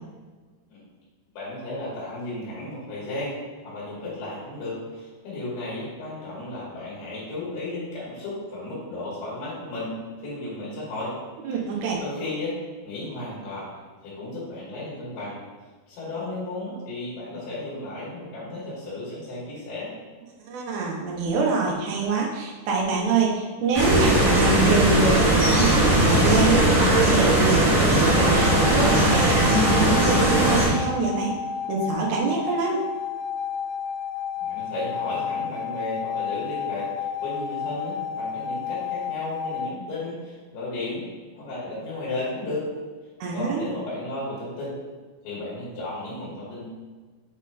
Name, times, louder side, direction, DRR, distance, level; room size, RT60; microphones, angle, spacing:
voice 1, 1.3-11.2 12.0-12.5 12.8-13.7 14.0-15.4 15.9-19.9 34.4-41.0 41.3-42.7 43.3-44.8 45.2-46.7, left 2 dB, 70° left, -8 dB, 4.5 m, -34 dB
voice 2, 11.4-12.0 20.4-31.3 31.7-32.8 43.2-43.6, right 4 dB, 85° right, -2 dB, 3.4 m, -25 dB
sound 1, 23.7-30.7, right 1 dB, 35° right, 2.3 m, -19 dB
sound 2, 28.1-39.7, left 8 dB, 90° left, 2.1 m, -31 dB
8.7 x 4.3 x 4.2 m, 1.4 s
omnidirectional pair, 4.8 m